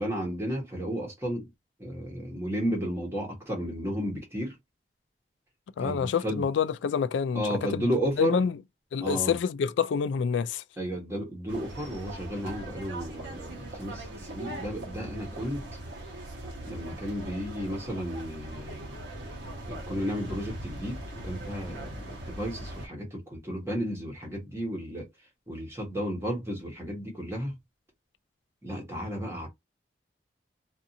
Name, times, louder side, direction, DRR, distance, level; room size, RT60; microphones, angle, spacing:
voice 1, 0.0-1.5 1.8-4.6 5.8-6.5 7.3-8.4 9.0-9.4 10.8-15.8 16.6-19.0 19.7-21.0 21.2-25.1 25.5-27.6 28.6-29.5, equal, 15° right, 1.0 m, -33 dB
voice 2, 5.8-7.8 8.2-8.6 8.9-10.6, left 6 dB, 85° left, 0.3 m, -27 dB
sound 1, 11.5-22.9, right 1 dB, 80° right, 1.0 m, -40 dB
2.6 x 2.4 x 2.7 m
head